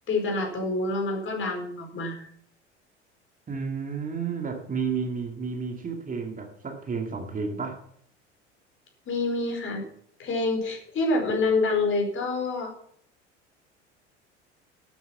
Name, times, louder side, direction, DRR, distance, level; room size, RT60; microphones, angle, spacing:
voice 1, 0.1-2.3 9.1-9.8 10.2-12.7, left 3 dB, 35° left, 4.7 m, -27 dB
voice 2, 3.5-7.8, right 5 dB, 25° right, 2.4 m, -31 dB
12.5 x 9.3 x 5.7 m
figure-of-eight pair, 65°, 35 cm